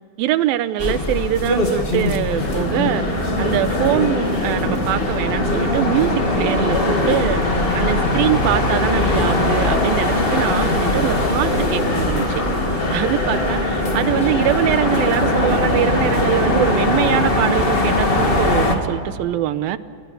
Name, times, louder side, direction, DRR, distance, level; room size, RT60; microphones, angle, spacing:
voice 1, 0.2-12.4 12.9-19.8, right 12 dB, 75° right, 13 dB, 2.5 m, -23 dB
sound 1, 0.8-18.8, left 2 dB, 20° left, 1.5 m, -21 dB
sound 2, 2.3-18.6, left 2 dB, 60° left, 7.3 m, -25 dB
29.5 x 22.5 x 7.1 m, 2.3 s
omnidirectional pair, 4.5 m